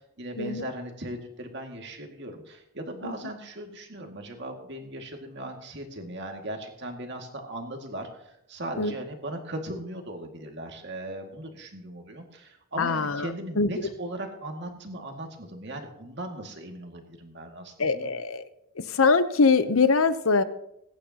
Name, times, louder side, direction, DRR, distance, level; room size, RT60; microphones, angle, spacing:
voice 1, 0.0-18.1, right 1 dB, 50° right, 3 dB, 2.1 m, -38 dB
voice 2, 12.8-13.3 13.6-13.7 17.8-18.4 18.9-20.4, left 4 dB, 70° left, 12 dB, 0.8 m, -22 dB
21.5 x 10.5 x 2.9 m, 0.85 s
head